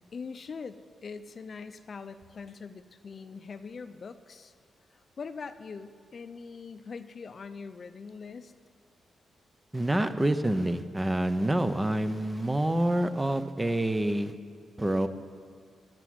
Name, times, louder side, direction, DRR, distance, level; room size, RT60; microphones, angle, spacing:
voice 1, 0.1-4.5 4.9-8.5, left 5 dB, 45° left, 11 dB, 0.6 m, -42 dB
voice 2, 9.7-14.3 14.8-15.1, right 1 dB, 15° right, 10 dB, 0.7 m, -27 dB
15.5 x 6.1 x 9.9 m, 2.2 s
cardioid pair, 110°, 0 cm